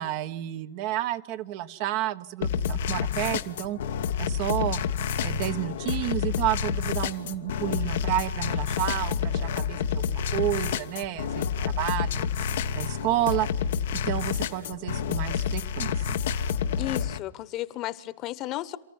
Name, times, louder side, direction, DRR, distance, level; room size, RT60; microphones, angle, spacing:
voice 1, 0.0-3.8 4.2-4.8 5.2-12.3 12.7-13.5 13.9-16.2, right 13 dB, 60° right, 1.3 m, -30 dB
sound 1, 2.4-17.2, left 7 dB, 75° left, 1.2 m, -29 dB
voice 2, 16.8-18.8, left 15 dB, 45° left, 1.3 m, -33 dB
28.5 x 14.5 x 9.8 m
hypercardioid pair, 100°, 0 cm